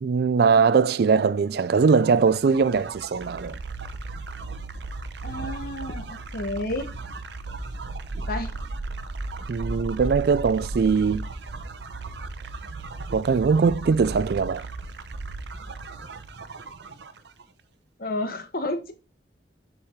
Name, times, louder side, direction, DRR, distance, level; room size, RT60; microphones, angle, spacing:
voice 1, 0.0-3.6 9.5-11.3 13.1-14.6, right 5 dB, 60° right, 0.3 m, -21 dB
sound 1, 1.7-17.4, right 3 dB, 75° right, 0.7 m, -36 dB
voice 2, 5.2-6.1 6.3-6.9 8.3-8.5 18.0-18.9, left 1 dB, 55° left, 1.1 m, -30 dB
7.2 x 4.8 x 3.6 m
head